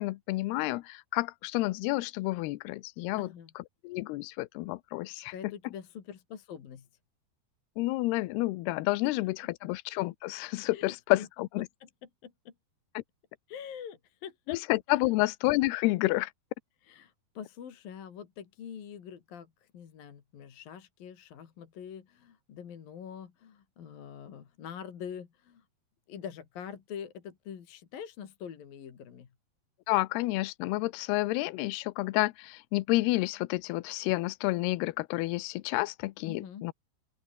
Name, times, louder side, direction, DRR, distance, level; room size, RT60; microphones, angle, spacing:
voice 1, 0.0-3.3 3.6-5.3 7.8-11.7 13.0-13.1 14.5-16.3 29.9-36.7, left 20 dB, 80° left, 2.7 m, -30 dB
voice 2, 3.1-3.5 5.3-6.9 10.7-11.3 12.0-12.5 13.5-14.6 14.9-15.0 16.8-25.6 26.1-29.3 36.3-36.7, left 8 dB, 60° left, 4.2 m, -44 dB
open air
omnidirectional pair, 4.8 m